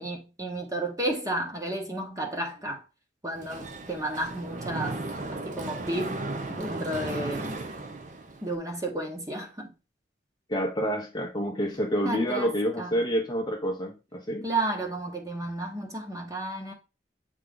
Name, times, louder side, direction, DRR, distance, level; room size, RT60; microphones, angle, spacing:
voice 1, 0.0-2.8 3.2-5.0 5.3-6.2 6.5-7.7 8.4-9.7 12.0-13.0 14.4-16.7, right 1 dB, 20° right, 1.2 m, -32 dB
Mechanisms, 3.4-8.5, right 2 dB, 40° right, 0.6 m, -35 dB
voice 2, 10.5-14.5, equal, 20° left, 0.7 m, -28 dB
8.2 x 3.4 x 3.8 m
head